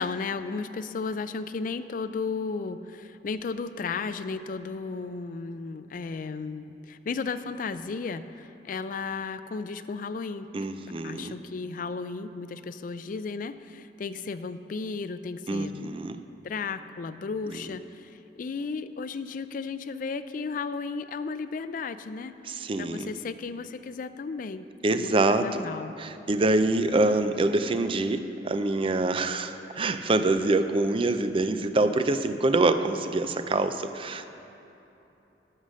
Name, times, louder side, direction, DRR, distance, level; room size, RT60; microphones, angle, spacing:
voice 1, 0.0-10.5 11.0-15.9 16.4-17.8 18.4-22.3 22.8-24.6 24.9-26.0, left 4 dB, 50° left, 12 dB, 0.4 m, -34 dB
voice 2, 10.5-11.3 15.5-16.2 17.5-17.7 22.4-23.1 24.8-25.7 26.0-34.3, right 2 dB, 30° right, 10 dB, 0.4 m, -25 dB
12.5 x 5.6 x 6.2 m, 3.0 s
head